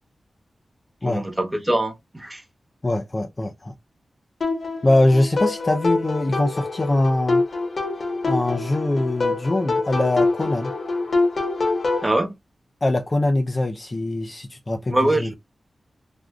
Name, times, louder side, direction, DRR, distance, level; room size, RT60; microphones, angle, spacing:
voice 1, 1.0-2.4 12.0-12.3 14.9-15.3, right 1 dB, 10° right, 0.9 m, -23 dB
voice 2, 2.8-3.7 4.8-7.4 8.2-10.7 12.8-15.3, left 2 dB, 25° left, 0.3 m, -22 dB
sound 1, 4.4-12.1, left 3 dB, 50° left, 1.2 m, -25 dB
3.3 x 2.4 x 2.4 m
wide cardioid pair, 160°, 0 cm